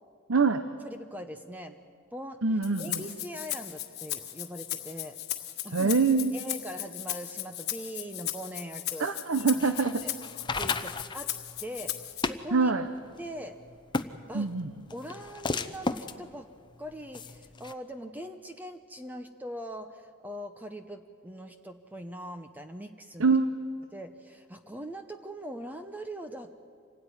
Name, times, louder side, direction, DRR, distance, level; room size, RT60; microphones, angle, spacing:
voice 1, 0.3-0.6 2.4-3.0 5.7-6.3 9.0-10.0 12.5-12.9 14.3-14.7 23.2-23.5, right 4 dB, 70° right, 10 dB, 0.8 m, -24 dB
voice 2, 0.8-1.8 2.1-2.4 2.8-5.2 5.6-5.9 6.3-9.1 9.3-9.6 10.0-10.1 10.6-11.3 11.6-12.7 13.2-13.6 14.3-14.5 14.9-16.5 16.8-23.4 23.9-26.6, equal, 10° right, 7 dB, 0.7 m, -41 dB
Rattle (instrument), 2.6-12.2, left 13 dB, 50° left, 1.5 m, -37 dB
sound 1, 9.4-17.7, left 3 dB, 20° left, 0.7 m, -36 dB
26.0 x 17.0 x 9.7 m, 2.3 s
head